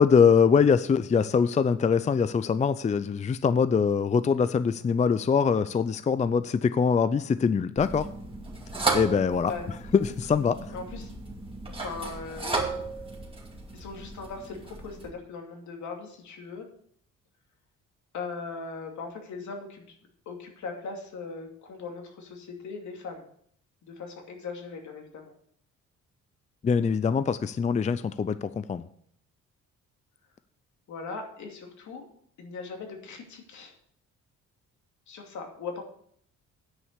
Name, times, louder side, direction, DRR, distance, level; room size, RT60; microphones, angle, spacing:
voice 1, 0.0-8.1 8.9-9.5 9.9-10.6 26.6-28.9, left 6 dB, 25° left, 13 dB, 0.4 m, -23 dB
sound 1, 7.8-15.1, right 3 dB, 20° right, 2.4 m, -34 dB
voice 2, 9.4-10.0 10.7-11.1 11.8-12.7 13.7-16.7 18.1-19.9 20.3-23.3 23.8-25.3 30.9-32.0 32.4-33.7 35.1-35.8, left 4 dB, 70° left, 2 dB, 2.6 m, -39 dB
9.6 x 5.4 x 8.1 m, 0.64 s
cardioid pair, 90°, 30 cm